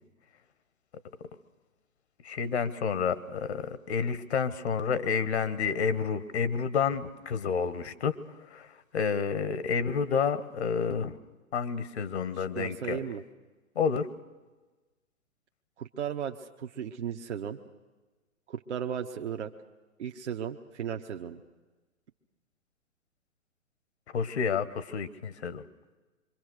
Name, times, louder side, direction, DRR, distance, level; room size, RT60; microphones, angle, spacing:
voice 1, 2.2-8.1 8.5-8.7 8.9-11.2 11.5-13.0 13.7-14.1 24.1-25.6, left 6 dB, 55° left, 13 dB, 1.4 m, -29 dB
voice 2, 12.4-13.2 15.8-17.6 18.5-19.5 20.0-21.4, right 8 dB, 55° right, 4 dB, 1.2 m, -35 dB
26.5 x 24.0 x 6.5 m, 1.2 s
figure-of-eight pair, 125°, 40 cm